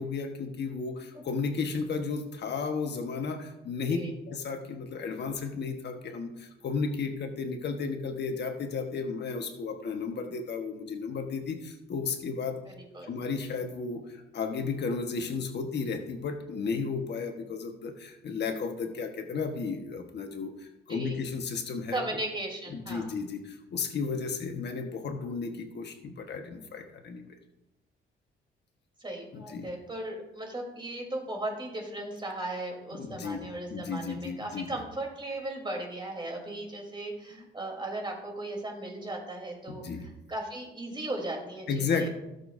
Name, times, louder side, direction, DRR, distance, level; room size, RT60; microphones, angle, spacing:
voice 1, 0.0-4.0 4.3-12.6 13.1-22.0 22.7-27.2 29.3-29.7 32.9-33.4 33.7-34.7 37.3-37.5 39.7-40.1 41.7-42.1, left 5 dB, 60° left, 4 dB, 1.3 m, -33 dB
voice 2, 12.7-13.1 20.9-21.2 21.9-23.0 29.0-39.8 40.3-42.1, right 1 dB, 25° right, 0 dB, 3.4 m, -37 dB
17.0 x 6.9 x 2.6 m, 0.92 s
cardioid pair, 90°, 20 cm